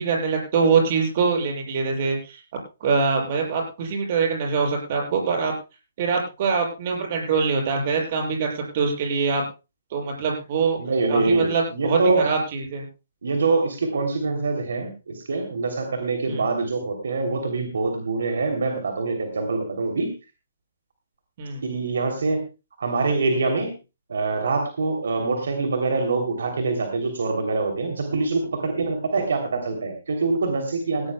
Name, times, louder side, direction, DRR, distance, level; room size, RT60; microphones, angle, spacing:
voice 1, 0.0-2.4 2.8-5.5 6.0-9.4 9.9-10.8 11.1-12.0 12.2-12.9 16.3-16.4 21.4-21.6, right 5 dB, 40° right, 1 dB, 6.9 m, -23 dB
voice 2, 10.8-12.3 13.2-20.1 21.6-22.4 22.8-23.8 24.1-31.1, right 3 dB, 75° right, 5 dB, 3.0 m, -24 dB
18.0 x 16.5 x 2.3 m, 0.29 s
hypercardioid pair, 160°, 0 cm